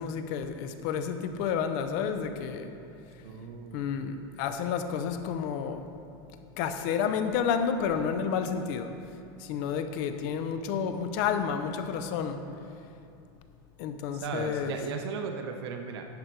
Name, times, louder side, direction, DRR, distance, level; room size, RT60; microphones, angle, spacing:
voice 1, 0.0-2.7 3.7-5.8 6.6-8.9 9.4-12.4 13.8-14.8, left 7 dB, 45° left, 8 dB, 0.6 m, -30 dB
voice 2, 3.2-4.1 14.1-16.1, right 5 dB, 85° right, 4 dB, 0.7 m, -36 dB
10.5 x 5.2 x 4.5 m, 2.6 s
supercardioid pair, 165°, 13 cm